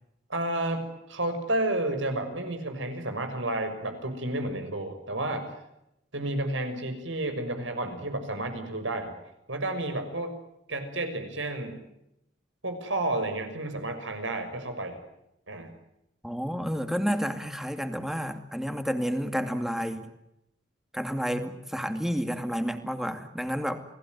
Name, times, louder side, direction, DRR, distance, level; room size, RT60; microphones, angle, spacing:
voice 1, 0.3-5.5 6.1-9.2 9.5-10.4 10.7-11.8 12.6-15.0 15.5-15.7, right 1 dB, 85° right, 7 dB, 6.3 m, -31 dB
voice 2, 16.2-20.1 20.9-23.8, equal, ahead, 7 dB, 2.3 m, -30 dB
29.0 x 19.5 x 9.4 m, 0.85 s
head